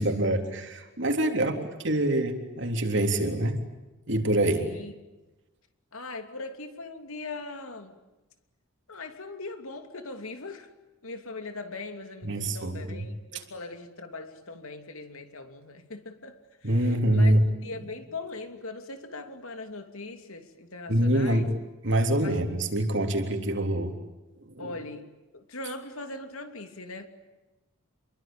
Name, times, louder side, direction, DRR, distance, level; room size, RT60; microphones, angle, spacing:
voice 1, 0.0-1.5 1.8-3.6 4.1-4.6 12.2-13.0 16.6-17.4 20.9-21.5 21.8-24.0 24.4-24.7, right 1 dB, 55° right, 3.5 m, -25 dB
voice 2, 4.6-4.9 5.9-8.0 8.9-10.7 11.0-17.3 17.6-21.4 22.2-22.4 24.6-27.1, left 3 dB, 80° left, 2.9 m, -40 dB
28.5 x 23.0 x 9.0 m
head